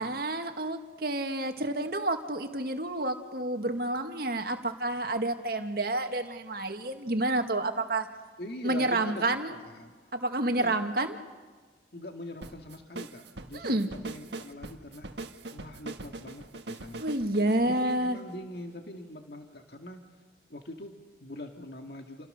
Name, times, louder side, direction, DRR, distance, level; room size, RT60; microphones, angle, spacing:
voice 1, 0.0-8.1 8.6-9.5 10.1-11.1 13.5-13.9 17.0-18.2, right 2 dB, 55° right, 5 dB, 2.1 m, -29 dB
voice 2, 8.4-10.1 10.5-10.8 11.9-15.2 15.5-17.0 17.7-20.0 20.5-22.3, left 1 dB, 60° left, 4 dB, 2.0 m, -43 dB
sound 1, 12.4-18.7, right 2 dB, 75° right, 1.5 m, -42 dB
30.0 x 29.0 x 6.7 m, 1.4 s
head